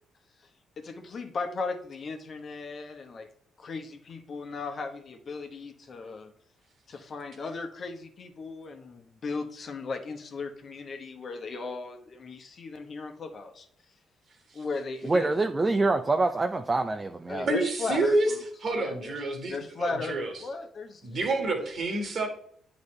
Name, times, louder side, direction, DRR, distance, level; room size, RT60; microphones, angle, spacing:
voice 1, 0.8-3.3 3.6-6.3 6.9-13.7 14.5-15.3 17.3-18.4 18.8-19.1 19.5-21.0 21.4-21.7, left 4 dB, 50° left, 5 dB, 1.1 m, -36 dB
voice 2, 15.0-17.5, right 3 dB, 30° right, 6 dB, 0.5 m, -25 dB
voice 3, 17.5-18.3 18.6-20.3 21.0-22.3, right 2 dB, 55° right, 4 dB, 1.8 m, -28 dB
9.3 x 4.0 x 3.2 m, 0.63 s
hypercardioid pair, 45°, 0 cm